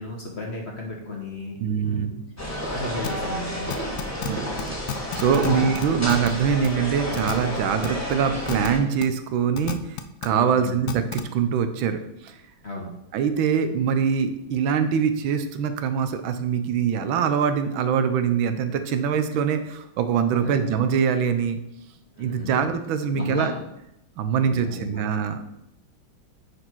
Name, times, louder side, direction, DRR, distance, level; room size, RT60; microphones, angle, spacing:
voice 1, 0.0-2.1 2.6-3.9 5.4-5.7 10.4-10.9 12.6-12.9 20.3-20.7 22.2-22.6 23.1-23.5 24.4-25.0, left 2 dB, 40° left, 0 dB, 1.1 m, -34 dB
voice 2, 1.6-2.2 4.2-12.4 13.1-21.6 22.2-23.5 24.2-25.4, right 7 dB, 75° right, 9 dB, 1.4 m, -24 dB
sound 1, 2.4-8.8, equal, 10° left, 1.3 m, -31 dB
sound 2, 3.0-3.1 3.7-4.3 4.6-4.7 4.9-5.5 5.7-6.3 6.6-6.7 7.1-7.3 7.8-7.9 8.5-8.7 9.0-9.1 9.6-10.3 10.9-11.2, left 10 dB, 70° left, 0.9 m, -30 dB
9.8 x 4.2 x 4.5 m, 0.82 s
omnidirectional pair, 2.2 m